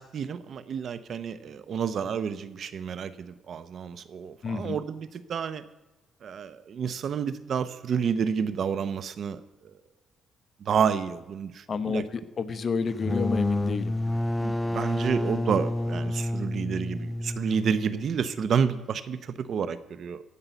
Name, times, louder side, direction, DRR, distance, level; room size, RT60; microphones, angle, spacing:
voice 1, 0.0-5.6 6.2-9.4 10.6-12.0 14.4-20.2, right 7 dB, 60° right, 14 dB, 0.8 m, -30 dB
voice 2, 4.4-4.8 11.7-14.2, left 5 dB, 45° left, 12 dB, 0.9 m, -30 dB
sound 1, 12.9-18.4, left 1 dB, 10° left, 0.5 m, -30 dB
15.0 x 5.5 x 9.0 m, 1.0 s
cardioid pair, 90°, 0 cm